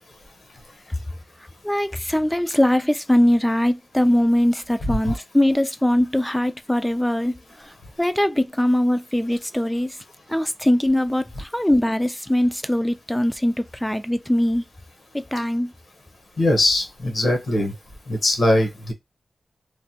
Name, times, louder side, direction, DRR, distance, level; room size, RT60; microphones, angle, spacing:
voice 1, 1.6-7.7 8.0-10.0 10.3-14.6 15.1-15.7, left 1 dB, 5° left, 0.3 m, -21 dB
voice 2, 16.4-17.7 18.1-18.9, left 1 dB, 65° left, 1.0 m, -21 dB
3.2 x 2.2 x 2.7 m
wide cardioid pair, 125°, 0 cm